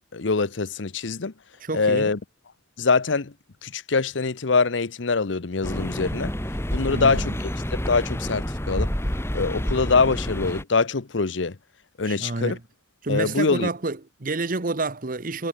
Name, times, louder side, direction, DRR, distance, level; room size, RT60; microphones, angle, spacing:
voice 1, 0.1-1.3 1.7-2.2 2.8-3.3 3.6-6.3 6.7-7.3 7.7-8.9 9.3-11.6 12.0-12.6 13.1-13.7, left 4 dB, 75° left, 0.9 m, -23 dB
voice 2, 1.6-2.1 6.9-7.4 12.0-12.6 13.0-15.5, right 3 dB, 45° right, 1.1 m, -29 dB
sound 1, 5.6-10.6, equal, 15° left, 2.1 m, -28 dB
head